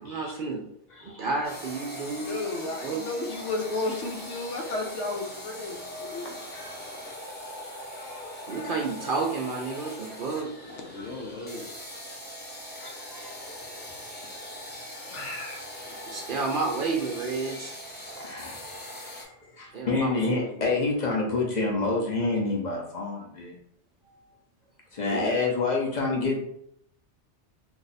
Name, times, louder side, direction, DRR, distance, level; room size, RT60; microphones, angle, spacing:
voice 1, 0.0-0.6 1.0-3.1 8.5-10.5 16.1-17.9 19.7-20.7 25.0-25.3, right 4 dB, 55° right, 0 dB, 0.6 m, -31 dB
voice 2, 1.0-1.3 3.3-3.5 6.5-6.7 7.0-7.2 8.0-8.7 11.0-11.1 12.8-14.0 14.7-15.6 15.9-16.2 18.1-19.2 19.5-23.5 24.9-26.4, left 3 dB, 45° left, -1 dB, 0.7 m, -30 dB
sound 1, 1.4-19.2, equal, 10° left, 0.6 m, -41 dB
voice 3, 2.3-6.3 10.7-11.7 15.0-15.6, left 2 dB, 75° left, 2 dB, 1.0 m, -33 dB
2.6 x 2.4 x 4.0 m, 0.72 s
omnidirectional pair, 1.2 m